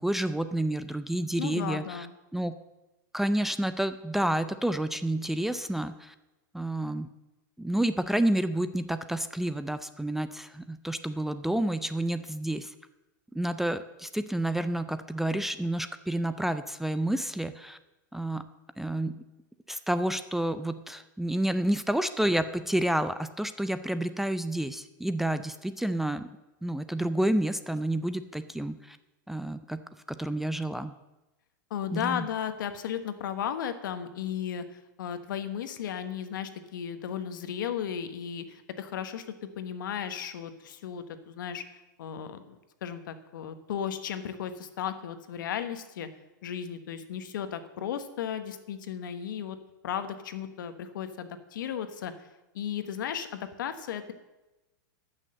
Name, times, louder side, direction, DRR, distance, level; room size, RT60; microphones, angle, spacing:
voice 1, 0.0-2.1 2.3-2.6 3.1-6.1 6.5-7.1 7.6-12.7 13.3-17.8 18.1-18.5 18.8-19.2 19.7-26.3 26.6-29.0 29.3-29.8 30.1-30.9 31.9-32.3, right 1 dB, 5° right, 11 dB, 0.4 m, -29 dB
voice 2, 1.4-2.1 31.7-39.2 39.6-41.6 42.0-46.1 46.4-49.6 49.8-52.1 52.5-54.1, left 8 dB, 75° left, 10 dB, 1.3 m, -35 dB
13.0 x 6.4 x 7.7 m, 1.0 s
hypercardioid pair, 130°, 11 cm